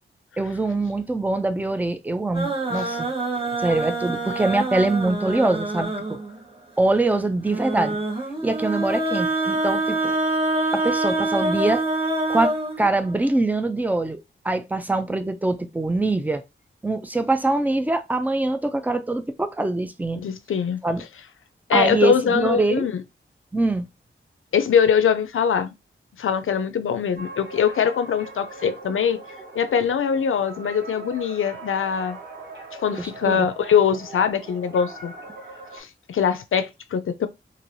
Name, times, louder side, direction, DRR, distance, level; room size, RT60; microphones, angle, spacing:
voice 1, 0.4-3.1 3.6-6.2 6.8-8.0 8.4-10.2 10.7-11.8 12.3-16.4 16.8-20.2 20.8-21.0 21.7-22.9 23.5-23.9 33.0-33.5, right 2 dB, 10° right, 0.3 m, -23 dB
sound 1, 2.3-6.4 7.5-13.3, right 2 dB, 25° right, 0.8 m, -26 dB
voice 2, 20.2-20.8 21.7-23.0 24.5-25.7 26.2-29.2 29.6-32.2 32.8-35.1 35.7-37.3, left 7 dB, 80° left, 0.4 m, -22 dB
sound 2, 27.2-35.8, right 2 dB, 55° right, 1.2 m, -41 dB
3.2 x 2.5 x 2.5 m
wide cardioid pair, 115°, 21 cm